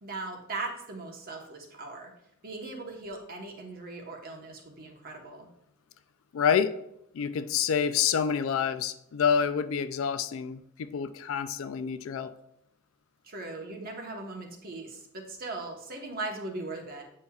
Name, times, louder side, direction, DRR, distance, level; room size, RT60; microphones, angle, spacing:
voice 1, 0.0-2.1 2.4-5.5 13.2-17.0, right 2 dB, 45° right, 2 dB, 1.1 m, -39 dB
voice 2, 6.3-6.7 7.1-12.3, left 7 dB, 70° left, 12 dB, 0.3 m, -27 dB
8.6 x 5.3 x 2.3 m, 0.80 s
head